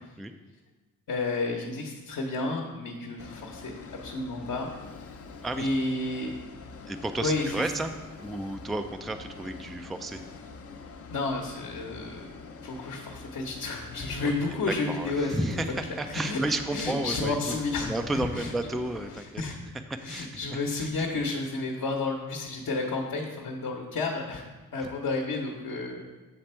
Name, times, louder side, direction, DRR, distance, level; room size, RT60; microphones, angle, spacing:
voice 1, 1.1-3.7 4.0-4.7 5.6-6.4 7.2-7.7 11.1-12.2 12.6-15.4 16.0-16.4 16.7-18.5 19.1-19.6 20.0-24.4 24.7-26.0, left 3 dB, 55° left, 0 dB, 1.0 m, -31 dB
sound 1, 3.2-19.2, left 4 dB, 40° left, 0.6 m, -45 dB
voice 2, 6.9-7.9 8.2-10.2 14.2-14.6 14.9-17.5 17.8-19.4 19.9-20.9, right 2 dB, ahead, 7 dB, 0.3 m, -32 dB
7.7 x 3.3 x 4.4 m, 1.2 s
supercardioid pair, 55°, 37 cm